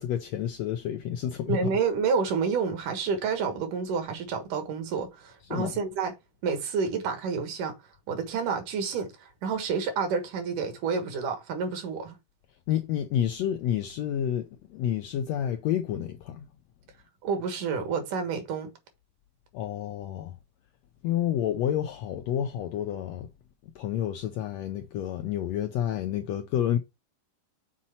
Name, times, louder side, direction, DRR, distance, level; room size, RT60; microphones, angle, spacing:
voice 1, 0.0-1.7 5.5-5.7 12.7-16.5 19.5-20.3 21.0-23.3 23.7-26.8, left 10 dB, 85° left, 1.5 m, -29 dB
voice 2, 1.5-6.1 6.4-7.7 8.1-12.2 17.2-18.7, right 5 dB, 75° right, 3.0 m, -29 dB
7.4 x 4.1 x 4.3 m
omnidirectional pair, 3.7 m